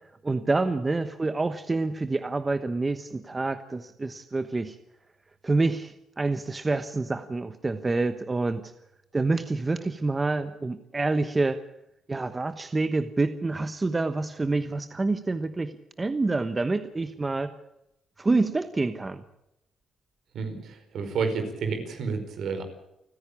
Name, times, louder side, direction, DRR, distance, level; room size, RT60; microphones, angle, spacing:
voice 1, 0.2-4.8 5.4-8.7 9.1-11.6 12.1-15.7 16.0-17.5 18.2-19.2, right 3 dB, 25° right, 10 dB, 1.1 m, -27 dB
voice 2, 20.3-22.6, right 5 dB, 70° right, 6 dB, 4.8 m, -30 dB
29.0 x 10.5 x 8.7 m, 0.83 s
cardioid pair, 90°, 0 cm